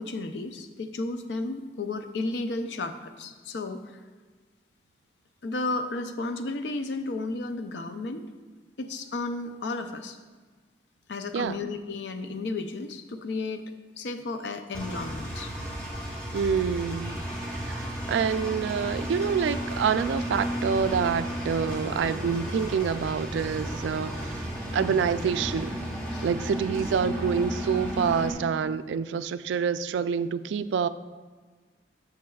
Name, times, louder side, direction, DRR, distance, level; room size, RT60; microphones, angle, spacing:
voice 1, 0.0-4.0 5.4-8.3 8.8-10.2 11.1-15.5 24.8-25.0 26.1-26.3, left 3 dB, 80° left, 8 dB, 0.5 m, -33 dB
Engine, 14.7-28.3, equal, 5° left, 1.3 m, -33 dB
voice 2, 16.3-17.2 17.7-24.5 24.7-25.7 26.2-30.9, right 6 dB, 85° right, 13 dB, 0.3 m, -27 dB
9.4 x 6.6 x 2.3 m, 1.4 s
head